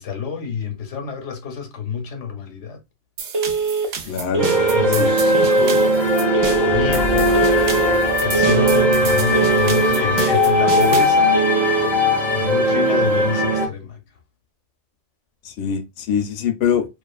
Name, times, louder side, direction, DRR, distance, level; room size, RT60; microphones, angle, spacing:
voice 1, 0.0-2.8 3.8-4.2 4.7-6.0 6.6-7.4 7.8-11.3 12.0-14.0, left 7 dB, 85° left, 1.1 m, -28 dB
sound 1, 3.2-11.2, right 6 dB, 65° right, 0.8 m, -31 dB
Telephone, 3.3-3.9 4.3-4.9 5.3-5.9 6.3-6.9 7.3-7.9 8.3-8.9 9.3-9.9 10.3-10.9 11.3-11.9, right 5 dB, 45° right, 0.4 m, -22 dB
voice 2, 4.1-4.7 5.0-5.1 15.4-16.8, left 7 dB, 65° left, 0.7 m, -23 dB
sound 2, 4.4-13.7, equal, ahead, 0.5 m, -18 dB
2.4 x 2.4 x 2.3 m
omnidirectional pair, 1.2 m